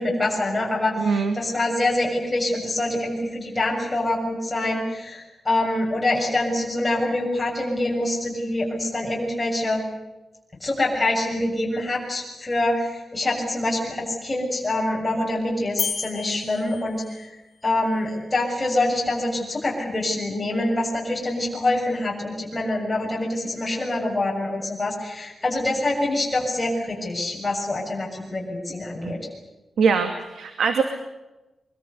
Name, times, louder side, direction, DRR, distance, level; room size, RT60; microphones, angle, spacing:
voice 1, 0.0-9.8 10.6-17.4 17.6-29.2, left 1 dB, 15° left, -3 dB, 7.0 m, -25 dB
voice 2, 1.0-1.4 29.0-29.1 29.8-30.8, right 5 dB, 90° right, 7 dB, 2.5 m, -22 dB
sound 1, 15.8-17.3, left 7 dB, 85° left, 2.6 m, -32 dB
24.0 x 24.0 x 8.3 m, 1.0 s
wide cardioid pair, 170°, 0 cm